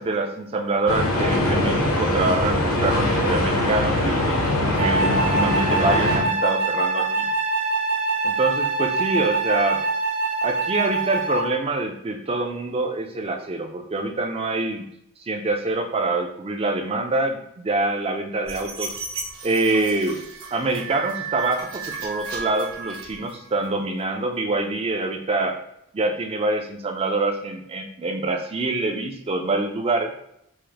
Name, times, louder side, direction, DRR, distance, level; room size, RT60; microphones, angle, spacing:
voice 1, 0.0-4.4 4.8-7.3 8.2-9.8 10.4-14.9 15.3-18.9 19.4-20.2 20.5-25.6 25.9-30.1, right 2 dB, 25° right, 4 dB, 0.4 m, -25 dB
sound 1, 0.9-6.2, left 1 dB, 75° left, 0.8 m, -22 dB
Wind instrument woodwind instrument, 4.8-11.6, right 3 dB, 55° right, 1.2 m, -24 dB
sound 2, 18.5-23.6, right 5 dB, 80° right, 1.1 m, -34 dB
4.8 x 2.0 x 2.9 m, 0.77 s
head